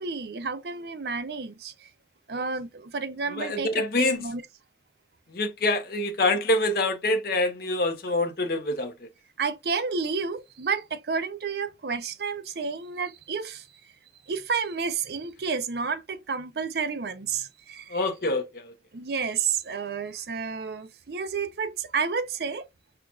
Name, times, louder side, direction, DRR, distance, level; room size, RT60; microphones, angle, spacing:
voice 1, 0.0-1.9 2.3-4.4 9.4-13.7 14.3-18.0 18.9-22.7, right 5 dB, 60° right, 0.5 m, -31 dB
voice 2, 3.3-4.2 5.3-9.1 17.9-18.7, left 2 dB, 55° left, 0.8 m, -26 dB
5.7 x 2.4 x 2.4 m
head